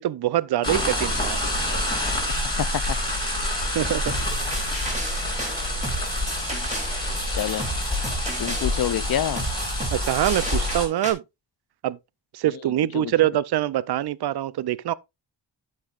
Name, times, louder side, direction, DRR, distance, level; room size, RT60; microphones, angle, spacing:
voice 1, 0.0-1.4 3.7-4.1 9.9-11.2 11.8-12.0 12.3-14.9, right 13 dB, 60° right, 0.5 m, -24 dB
sound 1, 0.6-10.9, left 1 dB, 10° left, 4.3 m, -27 dB
voice 2, 2.6-3.0 7.3-7.7 8.4-9.4 12.5-12.6 12.9-13.1, left 11 dB, 55° left, 0.5 m, -27 dB
sound 2, 4.1-11.1, right 1 dB, 15° right, 2.7 m, -34 dB
12.5 x 5.4 x 2.4 m
wide cardioid pair, 135°, 45 cm